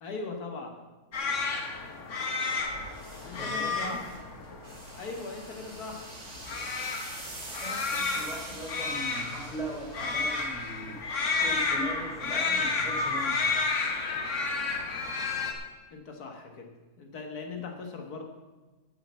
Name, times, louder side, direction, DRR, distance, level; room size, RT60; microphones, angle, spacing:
voice 1, 0.0-0.8 3.2-4.0 5.0-6.1 15.9-16.7 17.0-18.3, left 4 dB, 85° left, 3 dB, 1.9 m, -39 dB
sound 1, 1.1-15.5, left 4 dB, 55° left, 1.6 m, -31 dB
sound 2, 2.6-11.2, right 2 dB, 45° right, 2.2 m, -45 dB
voice 2, 3.3-4.0 7.5-11.0 11.3-13.4, right 1 dB, ahead, -3 dB, 3.4 m, -39 dB
10.0 x 6.8 x 8.1 m, 1.2 s
omnidirectional pair, 1.6 m